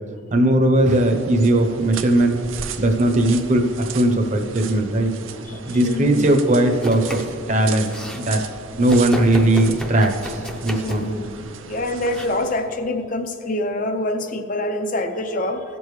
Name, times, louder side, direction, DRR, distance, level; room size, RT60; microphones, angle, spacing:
voice 1, 0.3-2.4 2.8-5.1 5.6-7.2 7.5-8.4 8.8-11.1, right 1 dB, 35° right, 4 dB, 0.8 m, -18 dB
sound 1, 0.8-12.7, right 6 dB, 75° right, 0.6 m, -36 dB
voice 2, 5.7-6.2 10.8-11.3 11.7-15.6, left 1 dB, 40° left, 8 dB, 0.6 m, -25 dB
Domestic sounds home sounds, 6.7-7.4 7.7-8.2 8.9-11.2 12.1-12.3, left 1 dB, 5° left, 0.6 m, -32 dB
17.5 x 6.9 x 3.2 m, 2.6 s
head